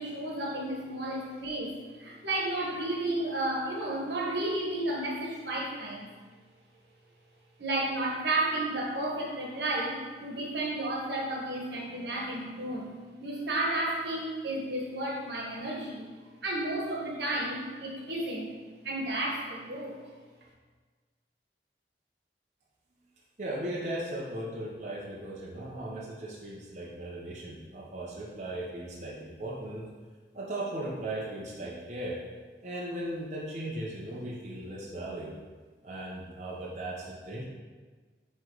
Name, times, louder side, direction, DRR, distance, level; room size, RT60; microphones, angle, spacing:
voice 1, 0.0-6.1 7.6-12.9 13.2-16.1 16.4-18.6 18.8-20.0, right 1 dB, 80° right, -2 dB, 1.4 m, -32 dB
voice 2, 23.4-29.9 30.3-32.2 32.6-35.3 35.8-37.4, right 1 dB, 40° right, -6 dB, 1.0 m, -37 dB
9.3 x 3.3 x 4.0 m, 1.4 s
head